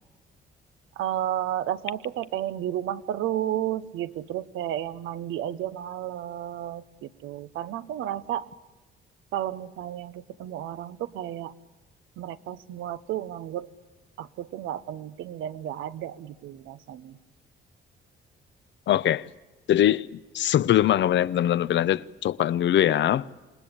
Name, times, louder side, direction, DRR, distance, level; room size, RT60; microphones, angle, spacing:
voice 1, 1.0-8.5 9.3-11.5 12.2-13.7 14.2-17.2, right 12 dB, 90° right, 1.0 m, -32 dB
voice 2, 18.9-19.3 19.7-20.1 20.3-23.3, left 11 dB, 65° left, 0.7 m, -22 dB
27.5 x 20.0 x 8.7 m
cardioid pair, 90°, 20 cm